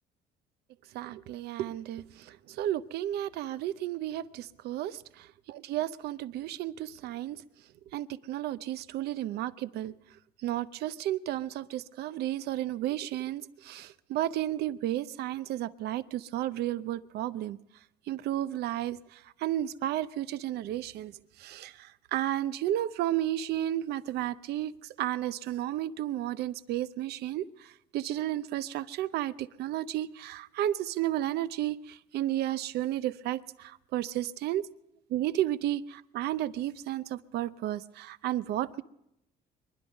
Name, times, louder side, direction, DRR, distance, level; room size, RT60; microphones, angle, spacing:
voice 1, 0.9-7.4 7.9-9.9 10.4-17.6 18.1-21.1 21.4-34.6 35.1-35.8 36.1-38.8, right 13 dB, 75° right, 16 dB, 0.6 m, -33 dB
23.5 x 11.0 x 5.3 m, 0.82 s
cardioid pair, 110°, 17 cm